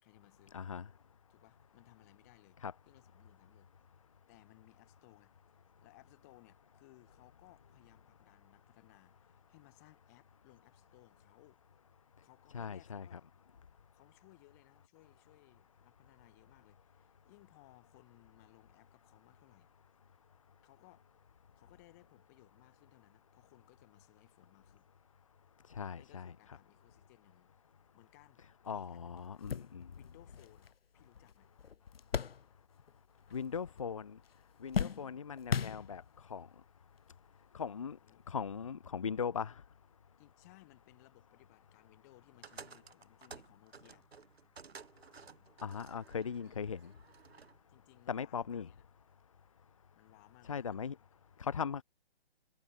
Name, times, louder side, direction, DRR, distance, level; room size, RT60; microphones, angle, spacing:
voice 1, 0.0-0.6 1.3-2.6 2.9-3.7 4.3-5.3 5.8-11.6 12.2-13.2 13.9-19.7 20.6-21.1 21.6-24.9 25.8-27.5 27.9-28.4 28.7-31.5 38.0-38.2 40.2-44.1 46.4-46.6 47.7-48.8 49.9-51.0, left 23 dB, 15° left, 3.7 m, -63 dB
voice 2, 0.5-0.9 2.6-2.7 12.5-13.2 25.7-26.6 28.7-29.9 33.3-34.2 34.6-36.0 36.3-36.5 37.5-38.0 38.3-39.6 45.6-46.8 48.1-48.7 50.5-51.0 51.4-51.8, left 6 dB, 35° left, 0.7 m, -39 dB
sound 1, 28.7-28.8 29.2-33.0 33.2-33.9 34.2-36.3 37.1-37.2 38.5-38.6, left 7 dB, 70° left, 1.2 m, -39 dB
sound 2, 42.4-47.6, right 5 dB, 80° right, 4.2 m, -54 dB
hypercardioid pair, 175°, 31 cm